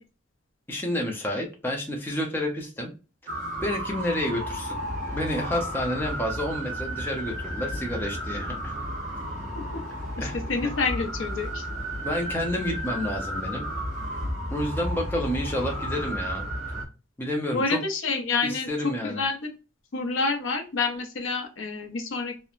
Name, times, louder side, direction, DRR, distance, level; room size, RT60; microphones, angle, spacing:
voice 1, 0.7-2.9 3.6-4.8 5.1-8.7 10.2-10.7 12.0-13.6 14.5-16.4 17.2-17.8 18.4-19.2, left 1 dB, 10° left, 0 dB, 0.5 m, -29 dB
sound 1, 3.3-16.8, equal, 35° right, 0.8 m, -33 dB
voice 2, 10.2-11.7 17.5-18.7 19.0-19.5 19.9-22.3, left 4 dB, 70° left, 5 dB, 0.6 m, -28 dB
2.9 x 2.0 x 2.4 m, 0.32 s
head